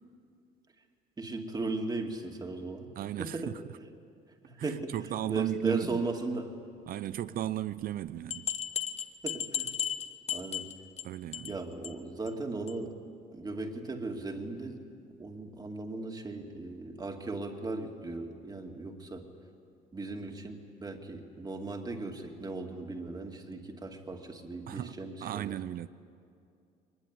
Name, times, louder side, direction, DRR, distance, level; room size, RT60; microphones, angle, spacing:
voice 1, 1.2-2.9 3.2-3.5 4.4-6.6 9.2-9.7 10.3-10.7 11.5-13.0 13.3-14.8 15.2-19.3 19.9-25.6, right 3 dB, 25° right, 2.5 m, -37 dB
voice 2, 3.0-3.6 4.6-6.0 6.9-8.5 11.0-11.6 24.7-24.9 25.2-25.9, right 12 dB, 60° right, 0.7 m, -35 dB
sound 1, 8.3-11.0 11.3-11.6 11.8-11.9 12.3-12.4 12.7-12.8, left 9 dB, 40° left, 1.2 m, -35 dB
22.5 x 21.0 x 9.9 m
cardioid pair, 110°, 17 cm